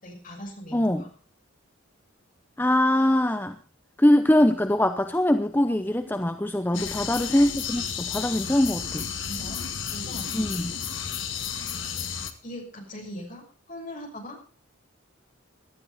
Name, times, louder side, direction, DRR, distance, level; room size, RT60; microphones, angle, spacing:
voice 1, 0.0-1.1 6.7-7.1 9.3-10.3 11.8-14.4, equal, 40° left, 1 dB, 6.0 m, -41 dB
voice 2, 0.7-1.0 2.6-3.6 4.0-9.1 10.3-10.7, left 1 dB, 10° left, 9 dB, 0.7 m, -22 dB
sound 1, 6.7-12.3, left 7 dB, 65° left, 1.8 m, -32 dB
17.5 x 13.0 x 4.1 m, 0.40 s
head